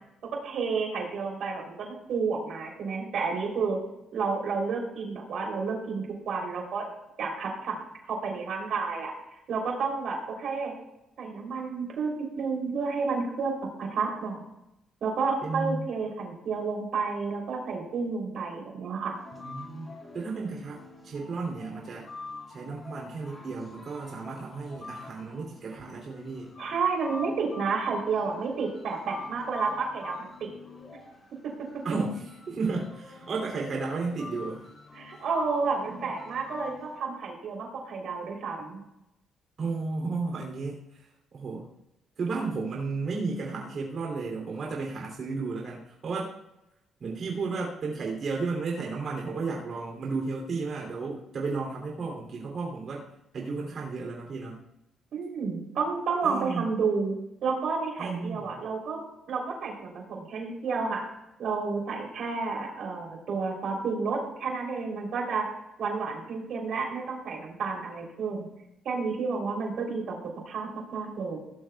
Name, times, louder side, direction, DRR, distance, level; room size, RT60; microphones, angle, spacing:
voice 1, 0.4-3.8 4.1-6.9 7.2-7.8 8.1-9.1 9.5-10.7 11.2-13.5 13.8-14.4 15.0-19.2 26.6-30.5 31.4-31.8 35.0-38.8 55.1-57.1 57.4-59.0 59.3-61.1 61.4-65.5 65.8-68.5 68.9-70.2 70.5-71.4, right 4 dB, 70° right, 1 dB, 3.4 m, -31 dB
voice 2, 15.4-15.9 19.3-22.1 22.5-26.5 31.8-34.7 35.8-36.1 39.6-41.1 41.3-41.7 42.2-46.3 47.0-53.1 53.3-54.6 56.2-56.6 58.0-58.6, right 4 dB, 55° right, -1 dB, 3.0 m, -33 dB
sound 1, 19.1-37.0, left 3 dB, 30° left, 4.4 m, -46 dB
17.5 x 12.0 x 2.4 m, 0.88 s
cardioid pair, 90°, 0 cm